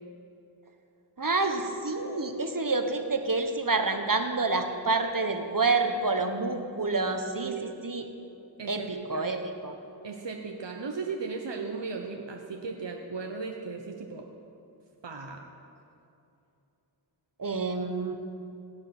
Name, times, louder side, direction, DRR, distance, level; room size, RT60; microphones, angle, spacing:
voice 1, 1.2-8.0 8.7-9.7 17.4-18.1, right 3 dB, 45° right, 6 dB, 1.4 m, -28 dB
voice 2, 7.3-7.6 8.6-9.3 10.0-14.3 15.0-15.4, right 4 dB, 65° right, 2 dB, 1.1 m, -36 dB
17.0 x 9.5 x 6.1 m, 2.7 s
wide cardioid pair, 45°, 46 cm